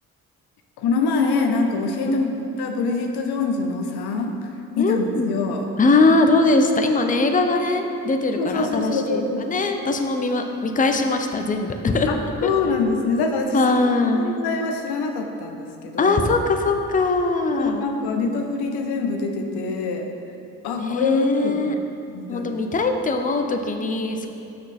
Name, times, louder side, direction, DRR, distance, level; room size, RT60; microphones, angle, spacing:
voice 1, 0.8-2.2 2.6-4.5 4.8-5.7 8.4-9.5 12.1-13.9 14.2-16.2 17.6-20.1 20.6-21.6 22.1-22.5, left 4 dB, 85° left, 3 dB, 0.7 m, -24 dB
voice 2, 2.0-2.4 4.8-5.4 5.8-12.1 13.5-14.4 16.0-17.8 20.8-21.7 22.3-24.3, left 3 dB, 20° left, 5 dB, 0.6 m, -21 dB
6.2 x 6.0 x 4.2 m, 2.7 s
supercardioid pair, 65°, 37 cm